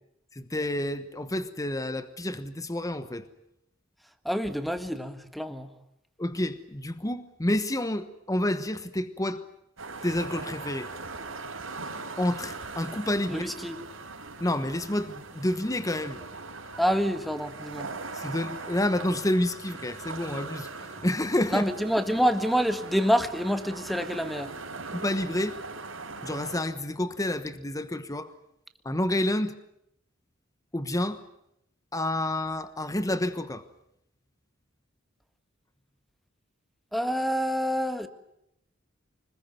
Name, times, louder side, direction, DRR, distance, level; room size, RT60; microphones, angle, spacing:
voice 1, 0.4-3.2 6.2-9.4 10.0-10.9 12.2-13.6 14.4-16.2 18.1-20.7 21.0-21.6 24.9-25.6 26.2-28.3 28.8-29.5 30.7-31.2 31.9-33.6, left 1 dB, 15° left, 11 dB, 1.1 m, -29 dB
voice 2, 4.3-5.7 13.3-13.8 16.8-17.9 21.5-24.5 36.9-38.1, equal, ahead, 9 dB, 1.6 m, -27 dB
sound 1, 9.8-26.6, right 3 dB, 80° right, 4.5 m, -40 dB
25.0 x 21.0 x 9.4 m, 0.79 s
head